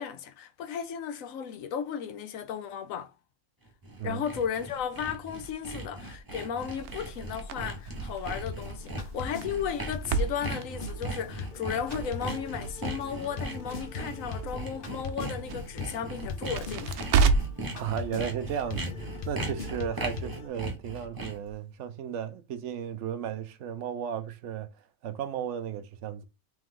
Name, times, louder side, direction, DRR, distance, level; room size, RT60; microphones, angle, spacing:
voice 1, 0.0-3.1 4.0-17.0, left 8 dB, 70° left, 1.0 m, -35 dB
Sawing, 3.7-21.5, right 1 dB, 20° right, 0.8 m, -38 dB
Crackle, 6.8-17.7, right 5 dB, 85° right, 1.1 m, -32 dB
sound 1, 8.4-20.5, left 5 dB, 45° left, 0.8 m, -41 dB
voice 2, 17.7-24.7 25.0-26.2, right 8 dB, 65° right, 0.9 m, -34 dB
3.5 x 3.3 x 3.7 m
omnidirectional pair, 1.5 m